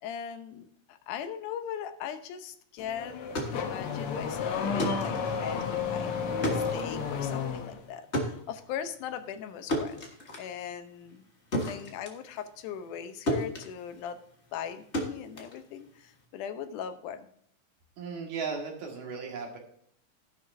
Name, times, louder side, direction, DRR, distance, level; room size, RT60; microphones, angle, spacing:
voice 1, 0.0-6.2 6.5-10.0 10.4-11.3 11.6-14.2 14.5-17.3, left 8 dB, 90° left, 10 dB, 2.4 m, -39 dB
Car / Accelerating revving vroom, 2.8-7.8, left 6 dB, 65° left, 1.5 m, -32 dB
sound 1, 3.1-13.0 13.3-16.2, equal, 35° left, 1.1 m, -35 dB
voice 2, 18.0-19.6, right 5 dB, 70° right, 0 dB, 3.1 m, -36 dB
12.5 x 11.0 x 2.7 m, 0.66 s
omnidirectional pair, 3.5 m